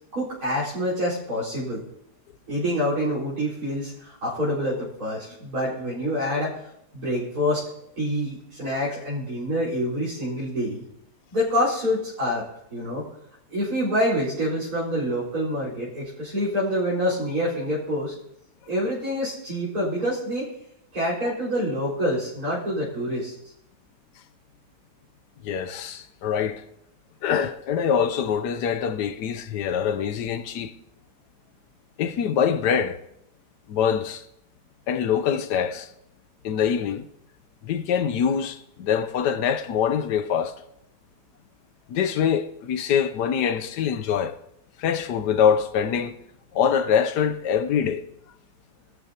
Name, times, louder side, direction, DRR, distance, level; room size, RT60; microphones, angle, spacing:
voice 1, 0.1-1.8 2.5-6.5 6.9-7.7 8.0-10.8 11.3-12.4 12.7-13.0 13.5-18.1 18.7-20.5 20.9-23.3, equal, 60° right, 5.0 m, -26 dB
voice 2, 25.4-26.6 27.2-30.7 32.0-33.0 33.7-34.2 34.9-35.9 36.4-37.1 37.6-40.6 41.9-44.4 44.8-46.2 46.5-48.0, left 8 dB, 75° left, 1.4 m, -24 dB
23.0 x 13.5 x 2.9 m
omnidirectional pair, 1.8 m